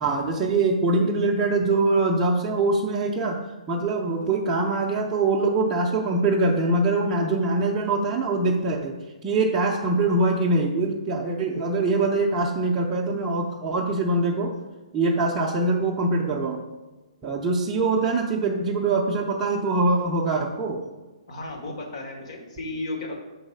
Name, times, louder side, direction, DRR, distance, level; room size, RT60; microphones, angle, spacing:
voice 1, 0.0-3.4 3.7-8.9 9.2-14.5 14.9-16.6 17.2-20.8, right 3 dB, 15° right, -3 dB, 0.5 m, -23 dB
voice 2, 21.3-23.2, left 2 dB, 60° left, 2 dB, 1.5 m, -34 dB
5.4 x 4.0 x 5.4 m, 1.2 s
hypercardioid pair, 160°, 4 cm